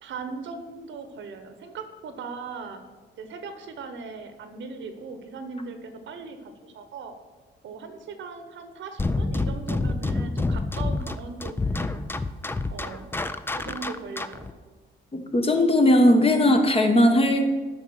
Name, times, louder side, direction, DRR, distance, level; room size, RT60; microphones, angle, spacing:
voice 1, 0.0-2.8 3.2-7.1 7.6-12.1 12.7-13.0 13.6-14.5, right 4 dB, 70° right, 8 dB, 1.1 m, -39 dB
sound 1, 9.0-14.5, left 2 dB, 10° left, 0.4 m, -28 dB
voice 2, 15.1-17.4, left 1 dB, 30° left, 5 dB, 1.2 m, -19 dB
8.6 x 5.5 x 6.4 m, 1.3 s
cardioid pair, 90°, 20 cm